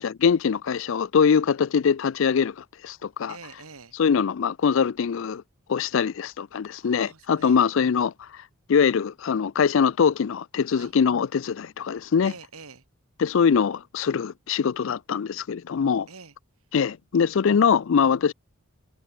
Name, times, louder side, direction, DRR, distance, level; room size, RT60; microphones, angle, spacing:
voice 1, 0.0-3.4 3.9-5.4 5.7-8.1 8.7-12.3 13.2-16.1 16.7-18.3, left 6 dB, 60° left, 0.4 m, -23 dB
voice 2, 3.3-3.9 5.9-6.1 6.8-7.6 10.8-10.9 12.2-12.8 16.1-16.3, right 4 dB, 85° right, 3.5 m, -45 dB
head